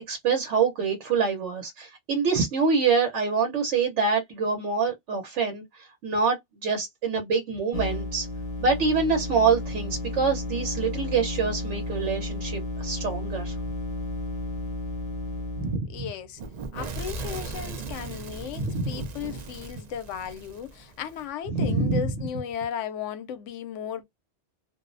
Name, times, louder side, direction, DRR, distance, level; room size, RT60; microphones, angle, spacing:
voice 1, 0.0-8.3 8.6-13.5 15.6-16.0 18.6-19.0 21.5-22.0, right 5 dB, 80° right, 1.0 m, -26 dB
sound 1, 7.7-15.8, left 1 dB, 35° left, 0.7 m, -32 dB
voice 2, 15.9-16.4 16.7-24.0, left 8 dB, 85° left, 0.9 m, -35 dB
Fire / Explosion, 16.4-21.2, right 3 dB, 60° right, 0.4 m, -38 dB
2.5 x 2.0 x 2.4 m
omnidirectional pair, 1.2 m